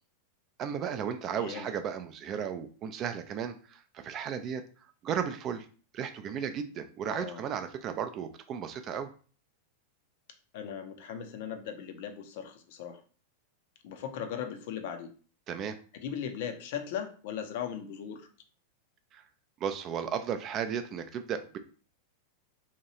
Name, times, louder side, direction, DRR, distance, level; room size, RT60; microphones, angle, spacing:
voice 1, 0.6-4.6 5.0-5.7 5.9-9.1 15.5-15.8 19.1-19.2 19.6-21.6, right 8 dB, 30° right, 8 dB, 0.3 m, -34 dB
voice 2, 1.3-1.7 7.0-7.4 10.5-13.0 13.8-15.1 15.9-18.3, left 8 dB, 50° left, 7 dB, 0.4 m, -38 dB
2.8 x 2.2 x 2.8 m, 0.40 s
figure-of-eight pair, 90°, 0 cm